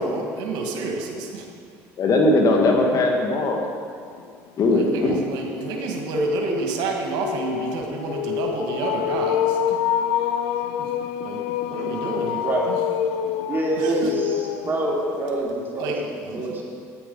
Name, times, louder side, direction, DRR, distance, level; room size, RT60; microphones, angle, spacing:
voice 1, 0.0-1.4 4.7-9.8 11.2-11.4 11.7-12.8 13.8-14.1 15.8-16.0, right 3 dB, 75° right, 1 dB, 1.8 m, -29 dB
voice 2, 2.0-3.6 4.6-5.2, left 2 dB, 55° left, 1 dB, 1.9 m, -19 dB
sound 1, 4.2-4.3 4.6-15.4, left 10 dB, 90° left, 0.5 m, -27 dB
voice 3, 13.5-16.6, right 1 dB, 30° right, -3 dB, 3.2 m, -26 dB
11.0 x 9.2 x 5.4 m, 2.3 s
supercardioid pair, 80°, 7 cm